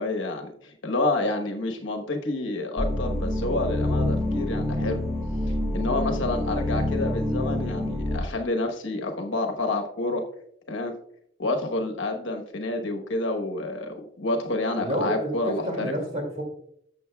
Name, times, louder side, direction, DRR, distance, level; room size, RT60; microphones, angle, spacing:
voice 1, 0.0-5.0 5.7-10.2 10.7-10.9 11.4-15.8, left 2 dB, 65° left, 3 dB, 1.2 m, -28 dB
sound 1, 2.8-8.2, left 1 dB, ahead, 1.6 m, -27 dB
voice 2, 14.8-16.4, right 1 dB, 35° right, 2 dB, 2.4 m, -29 dB
12.5 x 7.3 x 2.3 m, 0.69 s
head